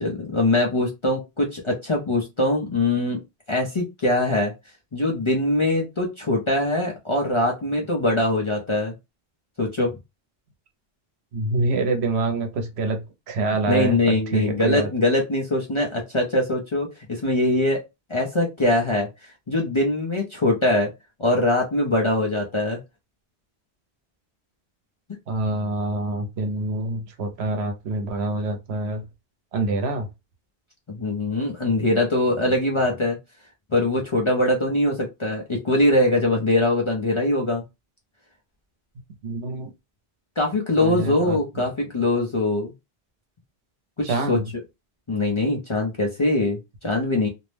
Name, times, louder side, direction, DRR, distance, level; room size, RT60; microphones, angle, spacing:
voice 1, 0.0-3.2 3.5-4.5 4.9-8.9 9.6-10.0 13.7-17.8 18.1-20.9 21.2-22.8 30.9-33.2 33.7-37.6 40.4-42.7 44.0-44.4 45.1-47.3, left 1 dB, 35° left, 0.5 m, -22 dB
voice 2, 11.3-14.9 25.3-29.0 29.5-30.1 39.2-39.7 40.8-41.6 44.0-44.5, right 2 dB, 80° right, 1.0 m, -26 dB
2.6 x 2.0 x 3.2 m
omnidirectional pair, 1.1 m